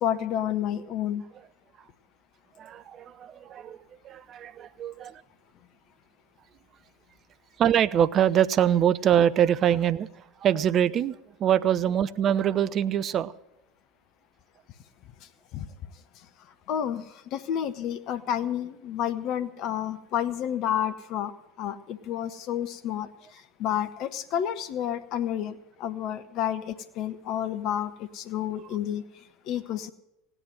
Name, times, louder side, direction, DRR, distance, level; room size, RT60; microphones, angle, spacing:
voice 1, 0.0-1.2 15.2-15.7 16.2-16.3 16.7-29.9, left 10 dB, 45° left, 11 dB, 0.9 m, -30 dB
voice 2, 2.6-3.8 4.0-5.2 7.6-10.1 10.4-13.3, right 10 dB, 35° right, 15 dB, 0.5 m, -24 dB
16.5 x 9.9 x 7.8 m, 0.84 s
figure-of-eight pair, 75°, 0 cm